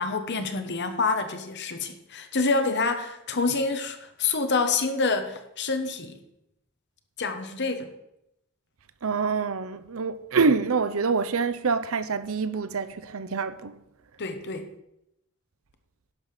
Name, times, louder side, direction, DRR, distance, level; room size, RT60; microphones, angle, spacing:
voice 1, 0.0-6.2 7.2-7.9 14.2-14.7, left 4 dB, 55° left, 1.2 m, -27 dB
voice 2, 9.0-13.8, right 4 dB, 70° right, 0.7 m, -26 dB
11.0 x 5.7 x 6.6 m
head